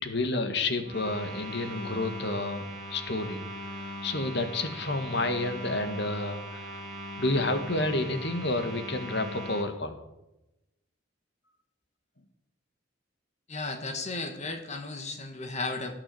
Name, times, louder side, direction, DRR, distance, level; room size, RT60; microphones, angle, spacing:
voice 1, 0.0-3.4 4.0-6.8 7.2-10.0, left 2 dB, 60° left, 8 dB, 1.8 m, -30 dB
sound 1, 0.8-9.7, equal, 40° right, 3.2 m, -40 dB
voice 2, 13.5-15.9, left 3 dB, 35° left, 6 dB, 1.7 m, -34 dB
17.0 x 8.8 x 7.8 m, 0.92 s
head